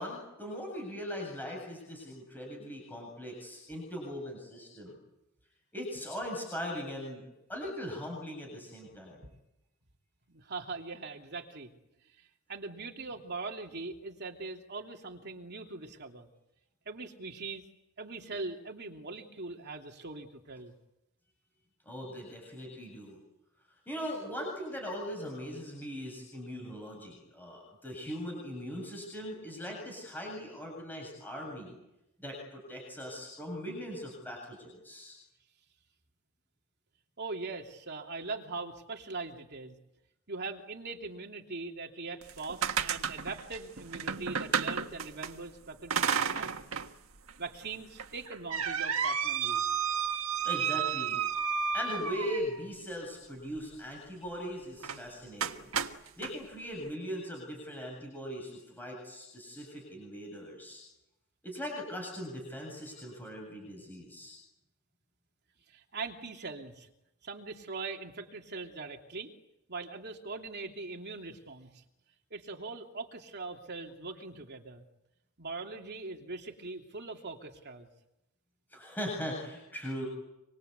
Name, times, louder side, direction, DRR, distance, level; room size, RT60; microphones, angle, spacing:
voice 1, 0.0-4.9 5.7-7.2 7.5-9.2 21.9-23.2 23.9-31.7 32.2-35.2 50.4-51.2 51.7-55.7 56.2-60.8 61.4-64.4 78.7-80.1, equal, 10° left, 0 dB, 7.8 m, -40 dB
voice 2, 10.3-11.7 12.2-16.3 16.8-17.6 18.0-20.7 37.2-39.8 40.3-46.5 47.4-49.6 65.7-66.9 67.2-69.3 69.7-71.8 72.3-74.8 75.4-77.9, right 3 dB, 55° right, 2 dB, 3.0 m, -41 dB
sound 1, 42.2-45.3 45.9-46.9 47.3-47.4 48.0-52.7 54.8-55.0 55.4-56.3, right 7 dB, 85° right, 1.6 m, -32 dB
26.5 x 24.0 x 8.3 m, 0.90 s
head